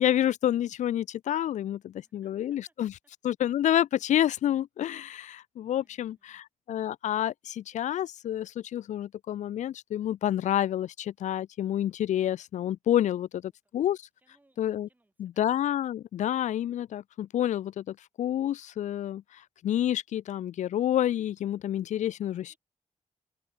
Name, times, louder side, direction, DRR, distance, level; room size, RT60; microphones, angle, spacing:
voice 1, 0.0-2.9 3.2-14.0 14.6-14.9 15.2-22.5, left 11 dB, 85° left, 0.4 m, -29 dB
voice 2, 2.0-2.7 5.8-6.3 13.6-15.5 22.3-22.6, right 2 dB, 15° right, 6.1 m, -71 dB
open air
wide cardioid pair, 150°, 12 cm